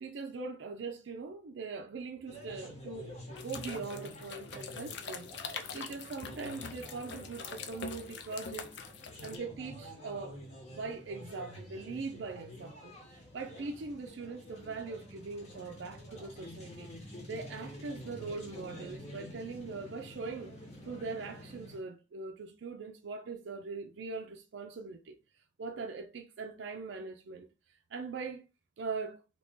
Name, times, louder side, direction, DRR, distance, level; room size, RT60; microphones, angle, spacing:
voice 1, 0.0-5.3 5.7-8.7 9.2-10.4 10.7-16.9 17.3-20.5 20.9-25.2 25.6-27.5 27.9-28.4 28.8-29.2, right 4 dB, 70° right, 0.4 m, -41 dB
sound 1, 2.3-21.8, left 1 dB, 35° left, 0.9 m, -48 dB
sound 2, 3.4-9.4, left 6 dB, 65° left, 0.5 m, -44 dB
2.9 x 2.6 x 3.5 m
head